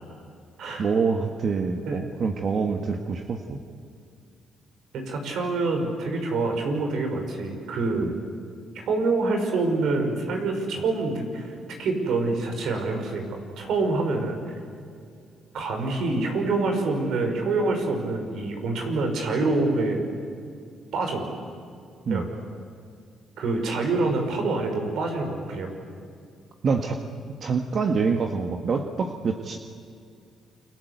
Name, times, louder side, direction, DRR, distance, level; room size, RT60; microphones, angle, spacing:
voice 1, 0.8-3.6 7.9-8.1 22.1-22.3 26.6-27.0 27.4-29.6, right 5 dB, 50° right, 4 dB, 1.8 m, -26 dB
voice 2, 4.9-8.1 8.9-14.4 15.5-20.0 20.9-21.3 22.1-22.3 23.4-25.7, right 3 dB, 75° right, 4 dB, 5.8 m, -26 dB
29.0 x 24.5 x 8.3 m, 2.3 s
cardioid pair, 90°, 0 cm